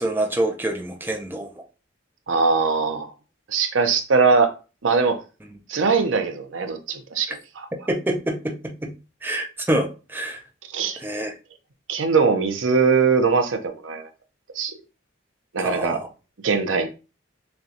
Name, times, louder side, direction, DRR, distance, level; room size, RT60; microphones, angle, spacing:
voice 1, 0.0-1.6 7.9-8.9 9.2-10.4 11.0-11.3 15.6-16.1, right 1 dB, 10° right, 0.4 m, -26 dB
voice 2, 2.3-3.1 3.5-4.5 4.8-5.2 5.7-7.7 10.7-11.0 11.9-14.1 14.6-14.7 15.5-16.0 16.4-16.9, right 4 dB, 80° right, 0.7 m, -21 dB
6.5 x 2.3 x 2.8 m
head